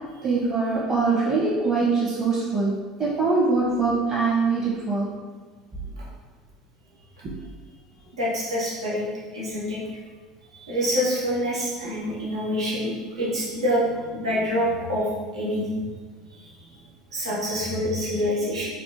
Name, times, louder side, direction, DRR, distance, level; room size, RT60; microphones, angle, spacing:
voice 1, 0.2-2.7 3.0-5.1 7.2-7.3, right 4 dB, 35° right, -8 dB, 1.0 m, -23 dB
voice 2, 8.2-9.1 9.3-9.8 10.5-15.9 16.4-16.5 17.1-18.7, equal, 80° right, -6 dB, 0.8 m, -26 dB
3.3 x 2.4 x 2.9 m, 1.4 s
figure-of-eight pair, 70°, 3 cm